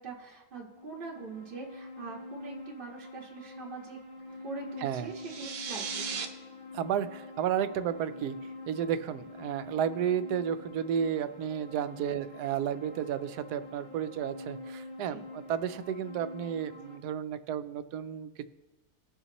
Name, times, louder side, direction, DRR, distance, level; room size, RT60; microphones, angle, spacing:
voice 1, 0.0-4.0 4.4-6.3 12.1-12.2 15.1-15.3, right 4 dB, 35° right, -3 dB, 1.6 m, -43 dB
sound 1, 0.7-17.0, left 2 dB, 20° left, 1.4 m, -46 dB
sound 2, 4.2-14.2, left 9 dB, 80° left, 2.9 m, -60 dB
sound 3, 5.1-6.3, right 6 dB, 65° right, 1.2 m, -36 dB
voice 2, 6.7-8.4 8.7-18.5, right 9 dB, 85° right, 12 dB, 1.1 m, -32 dB
19.5 x 6.8 x 3.0 m, 1.1 s
omnidirectional pair, 1.7 m